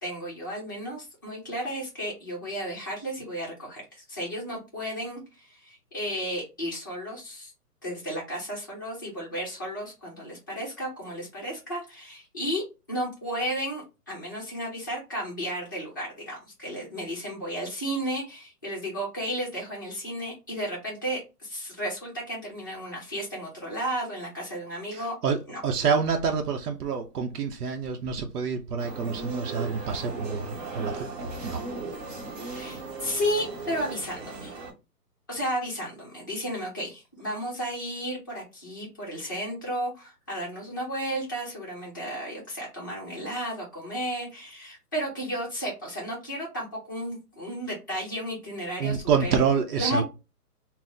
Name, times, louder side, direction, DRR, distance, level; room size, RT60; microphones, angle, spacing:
voice 1, 0.0-7.5 7.8-12.6 12.9-25.1 25.5-25.6 32.5-34.5 35.3-49.3 49.8-50.0, equal, 15° left, 0.5 m, -33 dB
voice 2, 24.9-31.1 31.4-31.6 48.8-50.0, right 6 dB, 70° right, 0.7 m, -27 dB
sound 1, 28.8-34.7, right 3 dB, 40° right, 1.1 m, -37 dB
3.9 x 2.0 x 2.5 m
hypercardioid pair, 160°, 47 cm